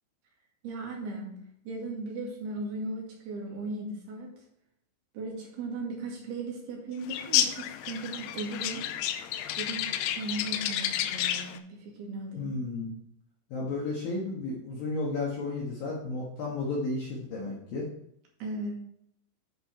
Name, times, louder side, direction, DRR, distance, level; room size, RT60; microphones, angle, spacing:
voice 1, 0.6-1.3 1.7-4.3 5.1-8.9 9.6-9.9 10.2-12.5 18.4-18.8, right 2 dB, 60° right, -1 dB, 3.7 m, -37 dB
sound 1, 7.1-11.6, left 11 dB, 85° left, 3.1 m, -30 dB
voice 2, 12.4-12.9 13.5-17.9, left 3 dB, 65° left, -4 dB, 2.5 m, -33 dB
10.5 x 5.7 x 4.3 m, 0.73 s
omnidirectional pair, 6.0 m